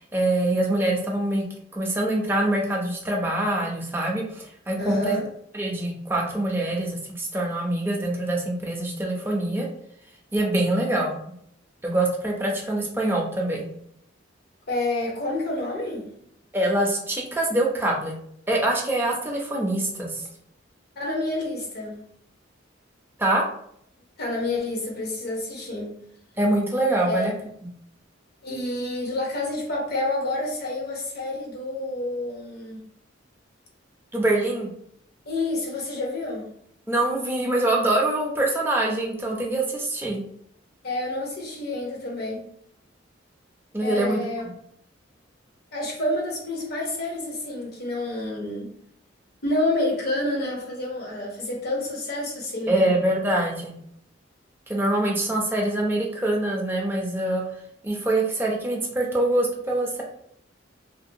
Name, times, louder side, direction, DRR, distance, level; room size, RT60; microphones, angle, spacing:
voice 1, 0.1-1.4 1.7-5.2 5.5-9.7 10.3-11.1 11.8-13.7 16.5-18.2 18.5-20.2 23.2-23.4 26.4-27.3 34.1-34.7 36.9-40.2 43.7-44.5 52.7-53.7 54.7-57.4 57.8-60.0, right 1 dB, 10° right, -1 dB, 0.5 m, -24 dB
voice 2, 4.8-5.3 14.7-16.1 21.0-22.0 24.2-25.9 27.0-27.3 28.4-32.8 35.3-36.5 40.8-42.4 43.8-44.4 45.7-48.7 49.4-52.9, left 1 dB, 55° left, -1 dB, 0.8 m, -28 dB
2.5 x 2.1 x 2.6 m, 0.69 s
head